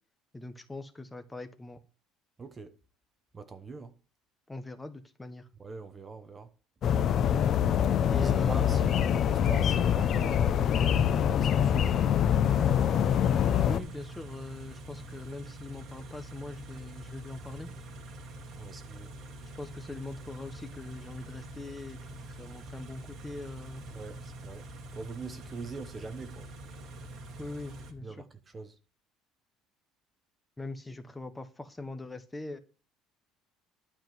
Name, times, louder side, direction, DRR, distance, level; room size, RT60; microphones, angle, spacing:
voice 1, 0.3-1.8 4.5-5.5 8.1-8.8 13.6-17.7 19.5-22.0 22.3-23.8 27.4-28.2 30.6-32.6, left 2 dB, 10° left, 1.2 m, -42 dB
voice 2, 2.4-2.7 3.3-3.9 5.6-6.5 7.9-11.9 18.6-19.1 23.9-24.6 24.9-26.5 28.0-28.7, right 4 dB, 20° right, 1.0 m, -43 dB
sound 1, 6.8-13.8, left 9 dB, 40° left, 0.8 m, -25 dB
Car / Idling, 12.4-27.9, right 1 dB, 45° right, 2.4 m, -45 dB
12.0 x 5.1 x 7.6 m
cardioid pair, 140°, 0 cm